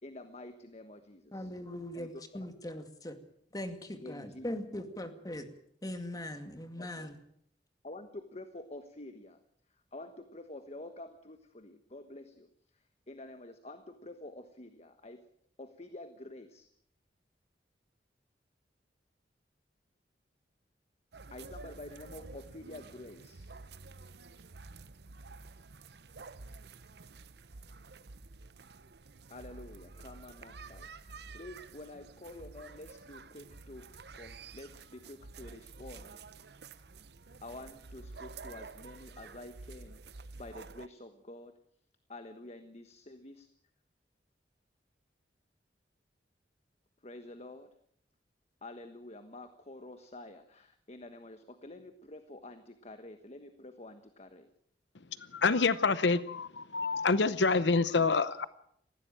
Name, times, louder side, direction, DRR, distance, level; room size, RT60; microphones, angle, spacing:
voice 1, 0.0-1.5 1.9-2.1 4.0-4.6 6.8-7.1 7.8-9.4 9.9-12.5 13.1-15.2 15.6-16.7 21.3-23.6 29.3-36.2 36.7-36.9 37.4-40.0 40.4-41.5 42.1-43.5 47.0-47.7 48.6-54.5, left 2 dB, 40° left, 9 dB, 1.3 m, -48 dB
voice 2, 1.3-3.2 3.5-5.5 5.8-7.2, left 1 dB, 20° left, 7 dB, 2.2 m, -40 dB
sound 1, 21.1-40.9, right 3 dB, 65° right, 0.9 m, -50 dB
voice 3, 55.3-58.5, left 4 dB, 85° left, 15 dB, 0.8 m, -27 dB
19.5 x 15.5 x 9.0 m, 0.69 s
head